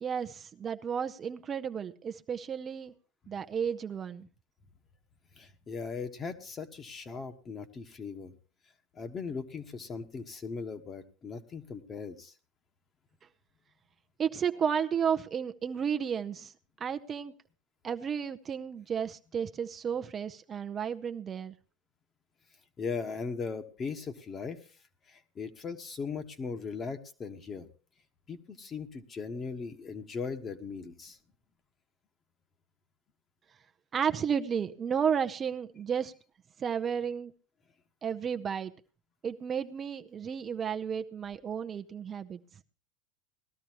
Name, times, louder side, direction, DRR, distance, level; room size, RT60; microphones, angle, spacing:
voice 1, 0.0-2.9 3.3-4.3 14.2-16.5 16.8-17.3 17.8-21.5 33.9-36.1 36.6-37.3 38.0-38.7 39.2-42.4, right 7 dB, 30° right, 8 dB, 0.7 m, -32 dB
voice 2, 5.3-8.3 8.9-12.3 22.8-24.6 25.1-27.7 28.3-31.2, left 5 dB, 30° left, 7 dB, 1.4 m, -38 dB
19.0 x 13.0 x 3.0 m, 0.36 s
hypercardioid pair, 90°, 0 cm